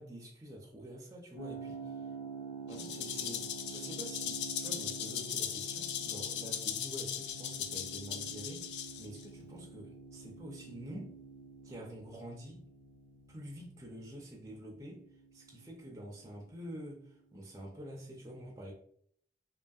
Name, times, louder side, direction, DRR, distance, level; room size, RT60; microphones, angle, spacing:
voice 1, 0.0-2.0 2.7-11.1 11.6-12.6 13.3-15.0 15.3-18.7, equal, 20° right, -2 dB, 0.4 m, -47 dB
sound 1, 1.4-16.1, right 4 dB, 45° left, 0.6 m, -48 dB
Rattle (instrument), 2.7-9.2, left 9 dB, 80° left, 0.3 m, -38 dB
2.7 x 2.6 x 2.3 m, 0.65 s
head